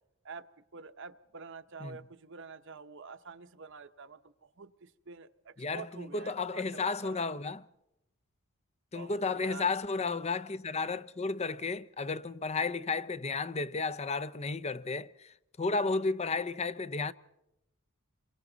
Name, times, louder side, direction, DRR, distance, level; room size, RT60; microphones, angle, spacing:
voice 1, 0.7-7.2 8.9-9.7, right 4 dB, 60° right, 1.0 m, -47 dB
voice 2, 5.6-7.7 8.9-17.1, left 4 dB, 30° left, 0.7 m, -33 dB
27.5 x 23.5 x 4.0 m
head